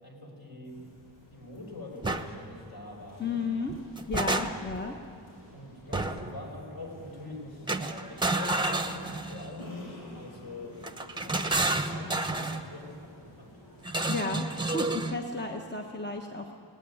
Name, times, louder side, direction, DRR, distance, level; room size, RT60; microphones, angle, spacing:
voice 1, 0.0-3.5 5.5-13.0 13.4-13.6, left 2 dB, 55° left, 0 dB, 4.8 m, -44 dB
sound 1, 0.6-14.9, equal, 90° left, 7.4 m, -53 dB
sound 2, 2.0-2.3 3.7-4.8 5.9-6.3 7.7-9.5 10.8-12.6 13.8-15.2, right 2 dB, 10° right, 0.9 m, -30 dB
voice 2, 3.2-3.7 4.1-4.9 14.1-14.5 14.7-16.5, left 3 dB, 25° left, 3 dB, 1.0 m, -33 dB
18.0 x 16.0 x 10.0 m, 2.7 s
wide cardioid pair, 115°, 43 cm